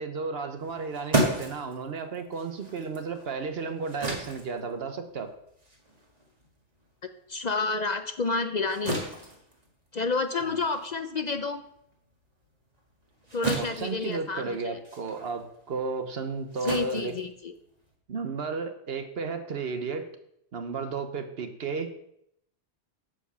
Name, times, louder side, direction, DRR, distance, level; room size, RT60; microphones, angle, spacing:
voice 1, 0.0-5.3 10.4-10.6 13.5-17.1 18.1-20.1 20.5-21.9, right 4 dB, 65° right, 7 dB, 1.1 m, -33 dB
sound 1, 0.6-7.4 7.7-18.0, right 2 dB, 35° right, 2.0 m, -35 dB
voice 2, 7.3-9.0 9.9-11.6 13.3-14.8 16.6-17.5, left 4 dB, 50° left, 8 dB, 0.6 m, -30 dB
9.7 x 5.0 x 6.8 m, 0.76 s
omnidirectional pair, 1.1 m